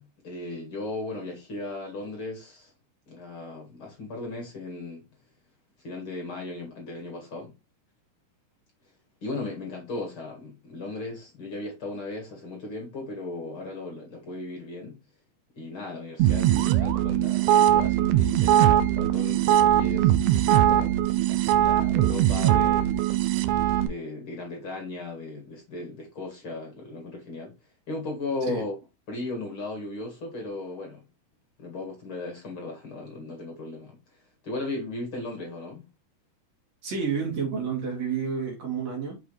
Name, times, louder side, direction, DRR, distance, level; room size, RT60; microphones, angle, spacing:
voice 1, 0.0-2.7 3.1-5.0 5.8-7.5 9.2-15.0 15.6-20.2 20.7-21.0 21.3-23.1 23.8-27.5 27.9-28.7 29.1-31.0 31.6-34.0 34.4-35.9, left 2 dB, 45° left, 2.4 m, -36 dB
sound 1, 16.2-23.9, right 12 dB, 75° right, 1.9 m, -21 dB
voice 2, 36.8-39.2, right 6 dB, 55° right, 3.5 m, -30 dB
6.3 x 5.9 x 3.1 m
omnidirectional pair, 3.7 m